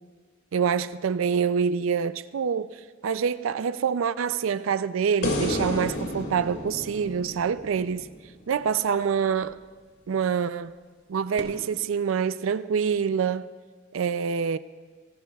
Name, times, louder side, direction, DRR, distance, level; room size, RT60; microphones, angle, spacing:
voice 1, 0.5-2.8 3.0-8.1 8.5-9.6 10.1-10.8 11.1-13.5 13.9-14.6, right 6 dB, 85° right, 0.4 m, -26 dB
sound 1, 5.2-8.5 11.4-11.5, left 1 dB, 60° left, 2.2 m, -31 dB
27.0 x 18.5 x 2.3 m
head